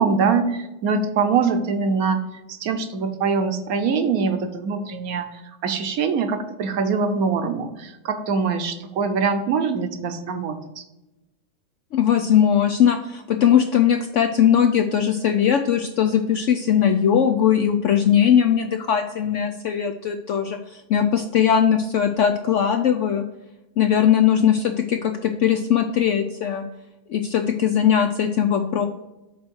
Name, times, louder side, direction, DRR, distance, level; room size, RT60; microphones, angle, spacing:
voice 1, 0.0-2.2 2.5-5.3 5.6-10.8, right 5 dB, 70° right, 8 dB, 1.1 m, -23 dB
voice 2, 11.9-23.2 23.8-26.6 27.1-28.9, left 9 dB, 70° left, 6 dB, 0.7 m, -19 dB
8.1 x 3.2 x 6.1 m, 1.0 s
omnidirectional pair, 1.7 m